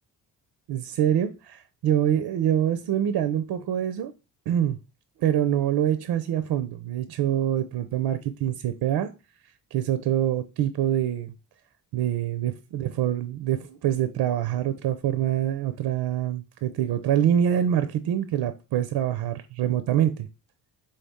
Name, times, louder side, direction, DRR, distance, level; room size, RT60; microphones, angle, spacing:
voice 1, 0.7-4.1 4.5-4.8 5.2-9.1 9.7-11.3 11.9-20.3, right 10 dB, 70° right, 0.5 m, -25 dB
4.2 x 3.2 x 3.5 m
cardioid pair, 80°, 42 cm